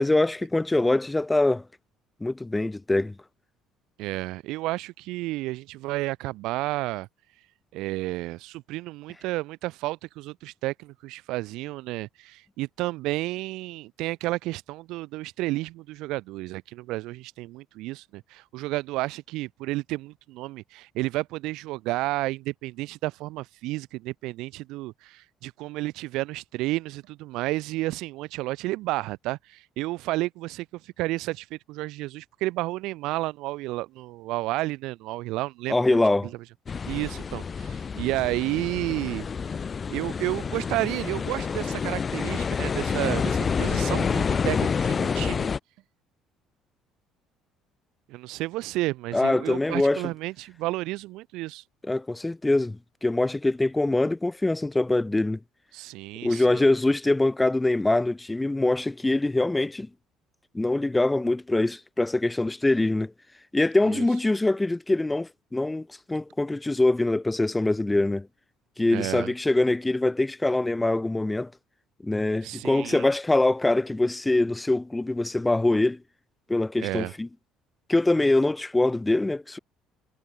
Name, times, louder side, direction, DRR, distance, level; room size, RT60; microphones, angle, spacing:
voice 1, 0.0-1.6 2.2-3.1 35.7-36.3 49.1-50.0 51.9-55.4 56.2-59.9 60.5-63.1 63.5-68.3 68.8-71.5 72.0-76.0 76.5-77.3 77.9-79.6, left 2 dB, 15° left, 0.8 m, -24 dB
voice 2, 4.0-7.1 7.7-35.8 36.9-39.3 39.9-45.5 48.1-51.6 55.7-56.7 63.9-64.1 68.9-69.3 72.4-73.1 76.8-77.1, right 19 dB, 75° right, 0.5 m, -31 dB
sound 1, 36.7-45.6, left 6 dB, 35° left, 1.8 m, -28 dB
supercardioid pair, 75°, 0 cm